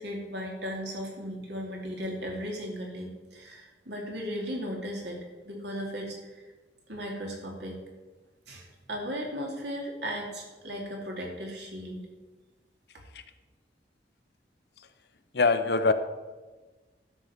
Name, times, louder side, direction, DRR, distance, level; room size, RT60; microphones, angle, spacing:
voice 1, 0.0-5.2 5.5-6.2 6.9-7.8 8.5-12.0, equal, 70° right, 0 dB, 2.6 m, -36 dB
voice 2, 15.3-15.9, left 3 dB, 65° left, 10 dB, 0.7 m, -22 dB
12.5 x 5.4 x 7.2 m, 1.3 s
head